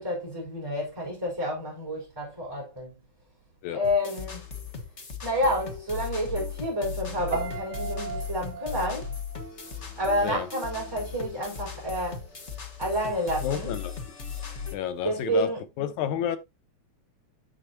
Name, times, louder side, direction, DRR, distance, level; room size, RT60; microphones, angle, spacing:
voice 1, 0.0-2.9 3.7-4.4 5.2-9.2 9.9-12.3 12.8-13.7 15.0-15.6, equal, 5° right, 4.4 m, -29 dB
sound 1, 3.8-14.8, left 6 dB, 55° left, 0.7 m, -37 dB
Piano, 7.3-10.4 10.7-11.1, right 7 dB, 55° right, 2.8 m, -38 dB
voice 2, 13.4-13.9 14.7-16.4, left 9 dB, 90° left, 2.4 m, -30 dB
8.4 x 7.5 x 2.7 m
omnidirectional pair, 3.3 m